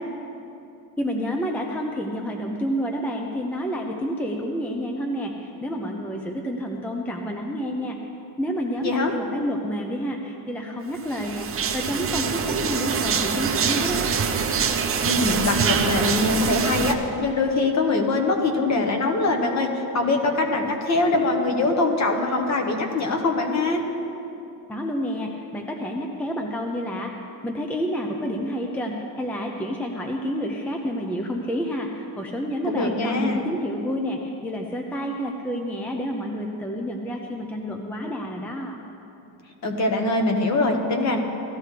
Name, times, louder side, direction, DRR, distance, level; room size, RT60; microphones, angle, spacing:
voice 1, 1.0-8.0 8.4-14.1 24.7-27.1 27.4-38.8, equal, 5° left, 2 dB, 0.5 m, -29 dB
voice 2, 8.8-9.1 15.1-23.8 32.6-33.4 39.6-41.2, left 2 dB, 40° left, 3 dB, 1.3 m, -23 dB
sound 1, 11.1-16.9, right 6 dB, 30° right, 0.7 m, -24 dB
17.0 x 14.0 x 3.3 m, 2.9 s
cardioid pair, 165°, 43 cm